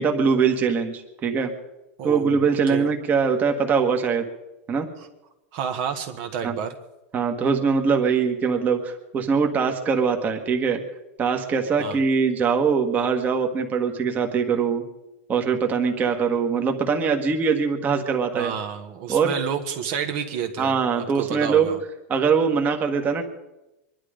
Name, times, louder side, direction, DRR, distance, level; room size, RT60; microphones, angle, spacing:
voice 1, 0.0-1.5 2.0-4.2 4.7-4.9 6.4-6.5 7.1-10.8 11.2-14.8 15.3-18.5 19.1-19.3 20.6-21.7 22.1-23.2, right 6 dB, 20° right, 4 dB, 1.5 m, -22 dB
voice 2, 2.0-2.9 5.0-5.1 5.5-6.7 11.8-12.0 18.3-20.8 21.1-21.8, right 7 dB, 45° right, 5 dB, 1.4 m, -30 dB
24.0 x 11.0 x 5.1 m, 0.98 s
supercardioid pair, 155°, 8 cm